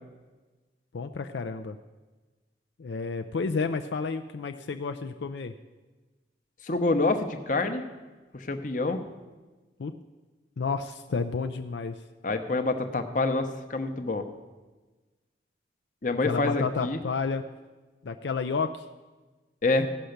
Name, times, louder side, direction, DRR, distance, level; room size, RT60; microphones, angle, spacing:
voice 1, 0.9-1.8 2.8-5.5 9.8-9.9 10.6-12.0 16.1-17.4 18.0-18.9, left 4 dB, 75° left, 7 dB, 0.4 m, -31 dB
voice 2, 6.6-7.8 8.3-9.1 12.2-14.2 16.0-17.0 19.6-19.9, left 2 dB, 45° left, 7 dB, 0.8 m, -27 dB
15.5 x 5.8 x 6.5 m, 1.3 s
head